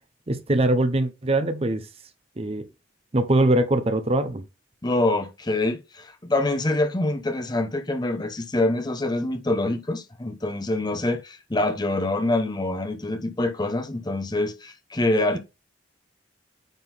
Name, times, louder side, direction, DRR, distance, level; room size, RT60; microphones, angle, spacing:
voice 1, 0.3-1.9 2.4-2.7 3.1-4.4, right 1 dB, 30° right, 0.7 m, -22 dB
voice 2, 4.8-15.4, left 2 dB, 20° left, 0.8 m, -25 dB
9.1 x 3.8 x 4.1 m
head